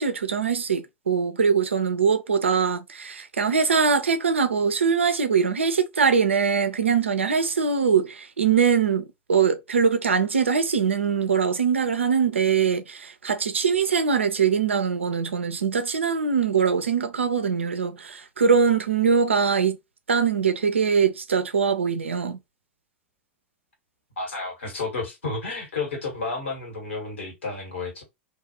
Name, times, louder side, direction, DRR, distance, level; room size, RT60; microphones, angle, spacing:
voice 1, 0.0-19.8 20.1-22.4, right 6 dB, 85° right, 0.5 m, -22 dB
voice 2, 24.2-28.0, left 3 dB, 75° left, 1.5 m, -31 dB
2.6 x 2.4 x 2.7 m
figure-of-eight pair, 90°, 6 cm